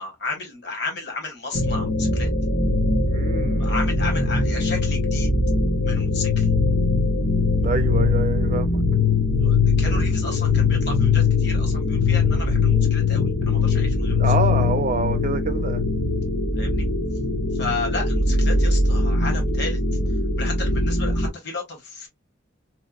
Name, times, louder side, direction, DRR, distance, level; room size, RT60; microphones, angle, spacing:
voice 1, 0.0-2.3 3.6-5.3 5.8-6.5 9.4-14.4 16.6-16.9 17.5-19.8 20.4-22.1, left 3 dB, 55° left, 1.2 m, -33 dB
sound 1, 1.5-21.3, left 3 dB, 75° left, 0.9 m, -21 dB
voice 2, 3.1-3.7 7.6-8.8 14.2-15.8, right 4 dB, 40° right, 0.5 m, -27 dB
4.5 x 2.1 x 2.3 m
head